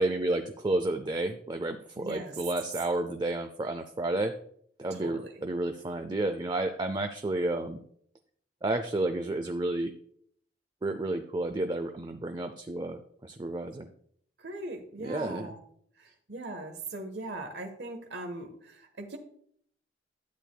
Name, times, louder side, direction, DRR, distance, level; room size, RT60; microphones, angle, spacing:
voice 1, 0.0-4.3 4.8-7.8 8.6-9.9 10.8-13.9 15.0-15.5, right 2 dB, 25° right, 6 dB, 0.5 m, -31 dB
voice 2, 1.9-2.4 4.9-5.3 14.4-15.6 16.0-19.2, right 2 dB, 75° right, 4 dB, 1.1 m, -40 dB
12.0 x 8.4 x 2.2 m, 0.64 s
head